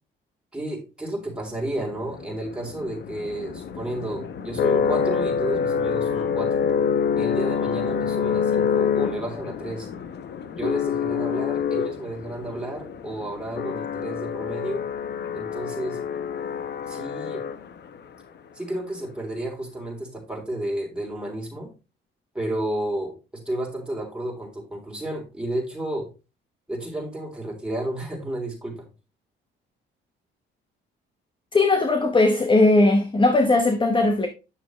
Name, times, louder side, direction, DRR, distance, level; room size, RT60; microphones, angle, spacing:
voice 1, 0.5-6.6 7.1-9.9 10.5-14.8 15.3-16.0 16.9-17.4 18.5-21.7 22.3-26.1 26.7-28.9, right 1 dB, 5° right, 3.5 m, -32 dB
sound 1, 1.8-18.0, left 7 dB, 60° left, 0.9 m, -27 dB
voice 2, 31.5-34.3, left 2 dB, 25° left, 1.0 m, -18 dB
8.9 x 6.7 x 3.1 m
cardioid pair, 90°, 20 cm